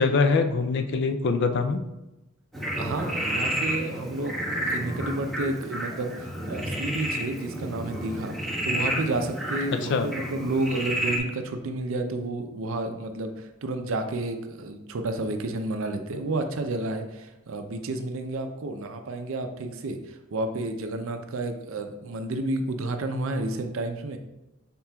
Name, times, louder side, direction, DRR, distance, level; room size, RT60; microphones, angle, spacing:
voice 1, 0.0-1.8 9.9-10.1, left 4 dB, 55° left, 7 dB, 0.4 m, -23 dB
Frog, 2.5-11.2, right 1 dB, ahead, 0.9 m, -31 dB
voice 2, 2.7-24.2, right 2 dB, 70° right, 6 dB, 0.5 m, -31 dB
5.7 x 3.7 x 2.3 m, 0.99 s
head